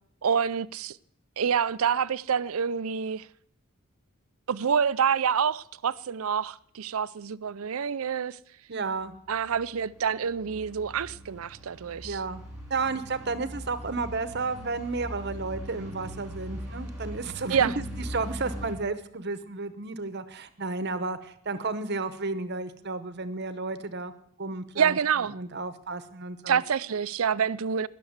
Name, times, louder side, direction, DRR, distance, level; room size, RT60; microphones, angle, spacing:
voice 1, 0.2-1.0 1.4-3.3 4.5-8.4 9.3-12.2 17.5-17.7 24.8-25.3 26.5-27.9, right 7 dB, 75° right, 0.5 m, -27 dB
voice 2, 8.7-9.1 12.0-12.4 12.7-17.8 18.1-24.1 24.4-25.0 25.3-26.6, right 3 dB, 50° right, 1.0 m, -32 dB
sound 1, 9.1-18.7, equal, 5° right, 3.3 m, -41 dB
20.5 x 6.9 x 8.0 m
head